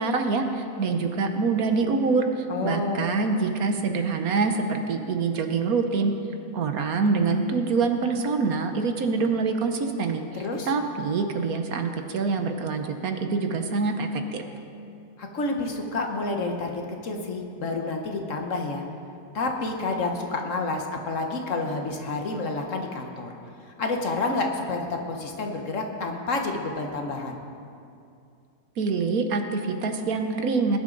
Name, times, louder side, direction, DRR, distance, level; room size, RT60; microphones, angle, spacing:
voice 1, 0.0-6.1 6.5-14.4 28.8-30.8, right 4 dB, 70° right, 6 dB, 1.4 m, -25 dB
voice 2, 2.5-3.0 10.3-10.7 15.2-18.8 19.3-23.3 23.8-27.4, left 3 dB, 55° left, 3 dB, 1.5 m, -29 dB
20.0 x 11.0 x 3.9 m, 2.5 s
omnidirectional pair, 1.6 m